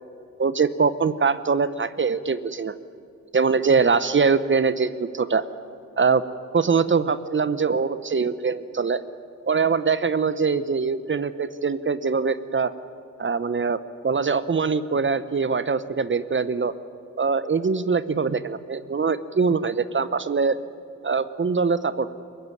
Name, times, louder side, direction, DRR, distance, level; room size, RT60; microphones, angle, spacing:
voice 1, 0.4-2.7 3.3-5.5 6.0-6.2 6.5-9.0 9.5-12.7 13.2-13.8 14.0-16.7 17.2-20.6 21.0-22.1, right 5 dB, 35° right, 15 dB, 0.9 m, -23 dB
23.0 x 15.0 x 9.7 m, 2.5 s
supercardioid pair, 50°, 34 cm